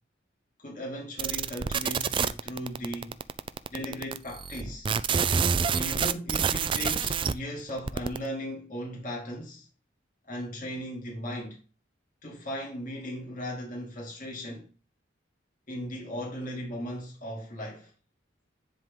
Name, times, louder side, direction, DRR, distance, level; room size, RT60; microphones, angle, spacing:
voice 1, 0.6-3.2 3.7-4.9 5.7-9.7 10.3-11.6 12.2-14.7 15.7-17.9, equal, 45° left, 2.5 m, -37 dB
sound 1, 1.2-7.3 7.7-8.3, right 6 dB, 25° right, 0.3 m, -27 dB
10.5 x 3.7 x 3.7 m
head